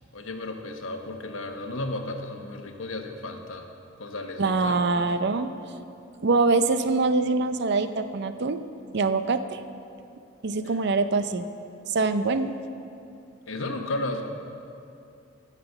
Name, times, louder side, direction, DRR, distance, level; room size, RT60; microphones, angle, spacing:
voice 1, 0.1-3.7 4.0-5.1 10.6-10.8 13.5-14.2, left 2 dB, 80° left, 4 dB, 1.1 m, -34 dB
voice 2, 4.4-5.5 6.2-8.6 8.9-9.6 10.4-11.5 11.9-12.6, right 3 dB, 55° right, 10 dB, 0.5 m, -24 dB
14.5 x 6.0 x 6.9 m, 2.6 s
head